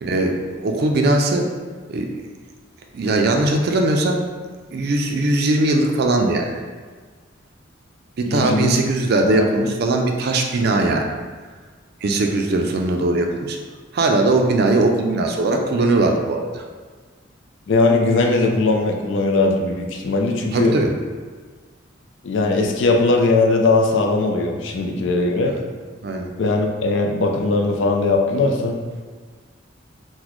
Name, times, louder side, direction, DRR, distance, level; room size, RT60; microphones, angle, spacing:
voice 1, 0.0-1.5 1.9-2.1 2.9-4.2 4.7-6.6 8.2-11.1 12.0-13.6 13.9-16.6 20.5-20.9 24.9-25.0 25.5-25.6 26.0-26.3, right 2 dB, 55° right, 3 dB, 0.4 m, -20 dB
voice 2, 8.3-8.7 9.2-9.5 17.7-20.7 22.2-25.5 26.4-28.8, left 3 dB, 65° left, 2 dB, 0.4 m, -19 dB
3.9 x 2.1 x 3.0 m, 1.5 s
head